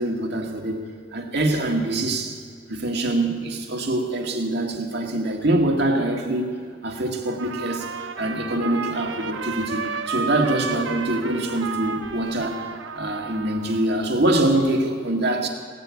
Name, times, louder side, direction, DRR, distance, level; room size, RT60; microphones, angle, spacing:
voice 1, 0.0-2.4 2.7-6.5 6.8-7.9 8.2-15.5, right 1 dB, 55° right, 2 dB, 2.0 m, -24 dB
Trumpet, 7.2-14.0, right 5 dB, 80° right, 1.0 m, -32 dB
17.5 x 8.2 x 8.6 m, 2.2 s
head